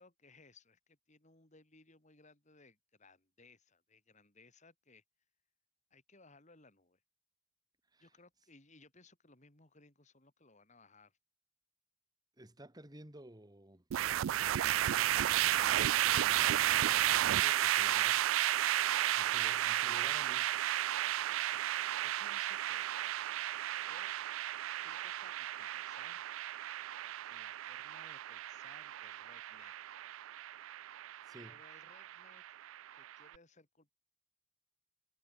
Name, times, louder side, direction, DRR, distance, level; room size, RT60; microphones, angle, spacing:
voice 1, 0.0-5.0 5.9-7.0 8.0-11.2 19.0-19.5 21.3-22.9 23.9-24.2 24.8-26.2 27.3-29.7 31.4-32.6 32.9-33.9, left 3 dB, 35° left, 3.5 m, -63 dB
voice 2, 12.4-13.8 15.8-18.5 18.9-20.7 31.2-31.6, right 1 dB, 20° right, 1.8 m, -54 dB
sound 1, 13.9-33.2, right 13 dB, 85° right, 0.3 m, -33 dB
head